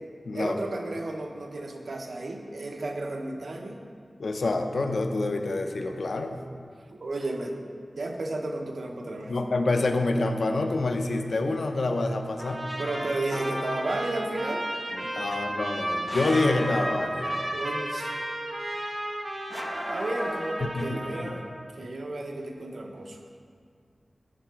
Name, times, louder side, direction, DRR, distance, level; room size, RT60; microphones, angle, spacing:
voice 1, 0.3-3.8 6.9-7.6 8.0-9.3 12.8-14.6 15.3-15.4 17.5-18.2 19.9-21.4 21.7-23.2, right 2 dB, 70° right, 3 dB, 0.8 m, -33 dB
voice 2, 4.2-6.3 9.3-12.7 14.9-17.4 20.7-21.4, left 2 dB, 75° left, 6 dB, 0.6 m, -27 dB
Trumpet, 12.4-21.5, right 1 dB, 35° right, 1.3 m, -33 dB
sound 1, 13.3-14.3 16.1-17.8 19.5-21.2, equal, 15° left, 0.6 m, -37 dB
9.9 x 4.8 x 4.6 m, 2.1 s
wide cardioid pair, 65°, 0 cm